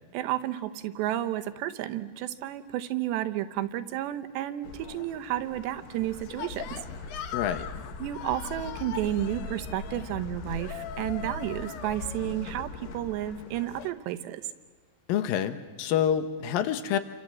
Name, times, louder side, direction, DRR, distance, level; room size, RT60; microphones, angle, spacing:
voice 1, 0.1-6.7 8.0-14.4, right 13 dB, 75° right, 10 dB, 2.9 m, -32 dB
sound 1, 4.6-13.9, left 5 dB, 65° left, 3.2 m, -39 dB
voice 2, 7.3-7.7 15.1-17.0, left 9 dB, 80° left, 11 dB, 2.0 m, -27 dB
29.0 x 25.5 x 7.5 m, 1.4 s
omnidirectional pair, 5.5 m